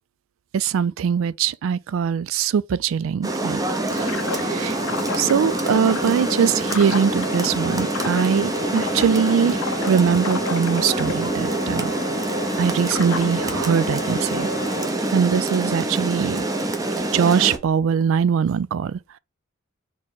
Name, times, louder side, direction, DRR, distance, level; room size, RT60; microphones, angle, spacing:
voice 1, 0.5-3.6 3.9-4.1 4.4-4.7 5.2-9.6 9.9-11.9 12.6-14.5 15.1-16.5 17.1-19.0, right 7 dB, 70° right, 0.3 m, -21 dB
Rain, 3.2-17.6, right 2 dB, 15° right, 0.7 m, -26 dB
sound 1, 3.9-14.9, left 5 dB, 90° left, 0.6 m, -32 dB
4.2 x 3.1 x 3.8 m
head